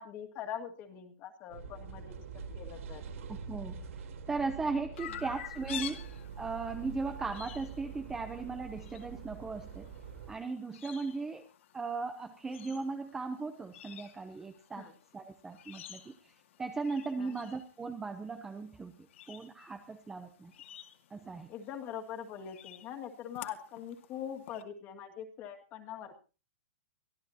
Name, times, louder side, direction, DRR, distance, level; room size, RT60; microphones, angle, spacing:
voice 1, 0.0-2.2 2.5-3.0 14.8-14.9 17.2-17.4 21.5-26.1, left 9 dB, 25° left, 4 dB, 2.2 m, -43 dB
sound 1, 1.5-10.3, right 5 dB, 70° right, 3.7 m, -45 dB
voice 2, 3.3-3.8 4.3-6.1 6.4-9.9 10.3-11.5 11.7-14.9 15.1-16.1 16.6-18.9 19.3-20.5 21.1-21.5, right 4 dB, 5° right, 7 dB, 0.8 m, -37 dB
Chirp tweet, 5.0-24.6, left 11 dB, 60° left, 2.4 m, -50 dB
24.0 x 15.0 x 2.9 m, 0.34 s
supercardioid pair, 175°, 8 cm